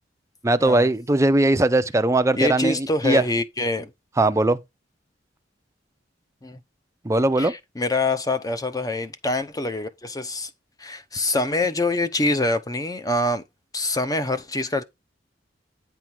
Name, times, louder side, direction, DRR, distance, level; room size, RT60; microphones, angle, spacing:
voice 1, 0.4-3.2 4.2-4.6 7.0-7.5, right 2 dB, 15° right, 0.5 m, -19 dB
voice 2, 2.4-3.9 6.4-6.6 7.4-10.5 10.8-13.4 13.7-14.8, left 2 dB, 20° left, 0.8 m, -25 dB
9.5 x 3.7 x 4.5 m
head